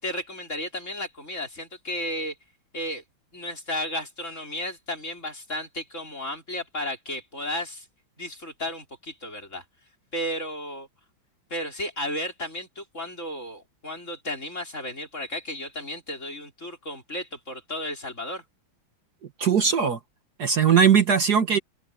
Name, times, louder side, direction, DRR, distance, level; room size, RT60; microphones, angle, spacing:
voice 1, 0.0-2.4 2.7-3.0 3.3-7.9 8.2-9.6 10.1-10.9 11.5-18.4, left 1 dB, 35° left, 5.8 m, -33 dB
voice 2, 19.4-20.0 20.4-21.6, right 7 dB, 55° right, 1.8 m, -19 dB
omnidirectional pair, 2.2 m